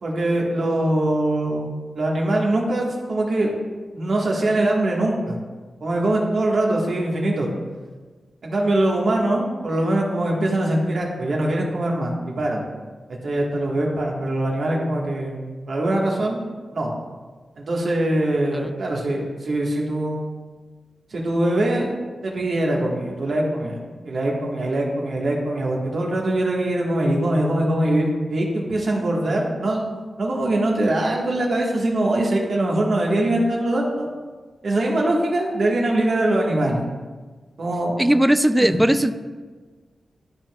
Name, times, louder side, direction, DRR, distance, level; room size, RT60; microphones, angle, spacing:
voice 1, 0.0-3.5 3.9-5.4 5.8-7.5 8.4-12.6 13.2-16.4 16.7-16.9 17.6-20.3 21.1-21.9 22.2-23.8 24.0-29.8 30.2-34.1 34.6-36.8 37.6-37.9 38.6-38.8, right 1 dB, 70° right, -2 dB, 1.5 m, -22 dB
voice 2, 38.0-39.1, right 1 dB, 10° right, 10 dB, 0.4 m, -18 dB
12.5 x 4.5 x 2.4 m, 1.4 s
wide cardioid pair, 80°, 0 cm